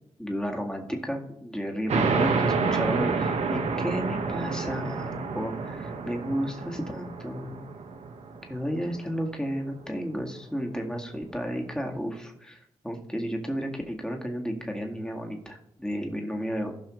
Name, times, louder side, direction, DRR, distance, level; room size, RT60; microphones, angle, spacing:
voice 1, 0.2-7.6 8.4-12.6 12.8-16.7, equal, 5° left, 1 dB, 2.0 m, -32 dB
sound 1, 1.9-9.1, right 4 dB, 70° right, 1.2 m, -28 dB
15.5 x 5.6 x 3.2 m, 0.79 s
cardioid pair, 60°, 12 cm